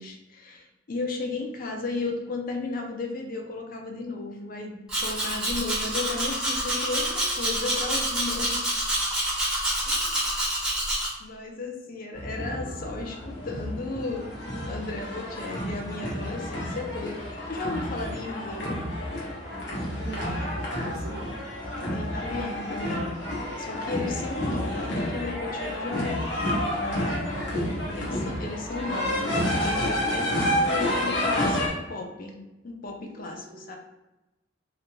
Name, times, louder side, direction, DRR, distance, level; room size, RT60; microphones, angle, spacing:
voice 1, 0.0-8.7 9.9-10.2 11.2-14.3 14.7-18.8 21.9-23.1 23.6-32.4 32.6-33.8, left 3 dB, 50° left, 2 dB, 0.5 m, -35 dB
Domestic sounds home sounds, 4.9-11.1, right 1 dB, 5° right, 0.6 m, -27 dB
sound 1, 12.1-31.7, left 1 dB, 75° left, 0.9 m, -30 dB
voice 2, 20.0-20.5 20.8-21.4 27.8-28.3 33.0-33.8, right 2 dB, 60° right, 3 dB, 0.4 m, -41 dB
2.4 x 2.2 x 3.0 m, 1.0 s
head